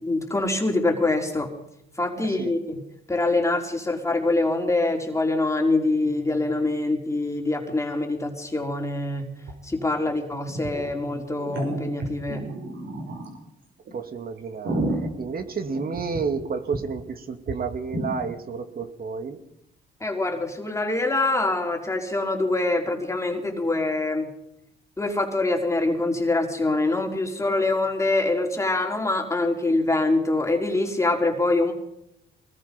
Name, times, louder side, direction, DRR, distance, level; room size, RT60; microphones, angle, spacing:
voice 1, 0.0-1.5 2.0-2.8 3.1-9.4 9.6-12.5 20.0-24.3 25.0-31.7, left 2 dB, 15° left, 2 dB, 4.2 m, -24 dB
voice 2, 2.2-2.5 13.9-19.4, right 5 dB, 50° right, 7 dB, 2.6 m, -31 dB
sound 1, 9.5-9.6 9.8-9.9 10.5-10.9 11.4-13.4 13.9-14.0 14.4-16.4 16.7-16.8 17.1-17.2 17.5-17.6 17.9-18.1, right 2 dB, 65° right, 6.9 m, -30 dB
23.5 x 20.5 x 5.4 m, 0.81 s
cardioid pair, 90°, 20 cm